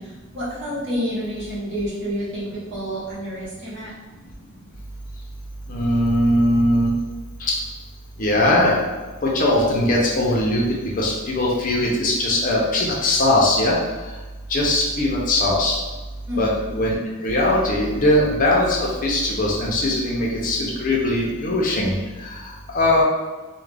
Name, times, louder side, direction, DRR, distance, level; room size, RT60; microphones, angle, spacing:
voice 1, 0.0-3.9 16.3-16.6, equal, 55° right, -8 dB, 1.1 m, -29 dB
voice 2, 5.7-6.9 7.4-7.6 8.2-8.8 9.2-10.7 11.0-13.8 14.5-15.8 16.4-22.0 22.2-22.4 22.7-23.0, left 1 dB, 40° left, -3 dB, 0.5 m, -20 dB
2.3 x 2.1 x 3.3 m, 1.3 s
head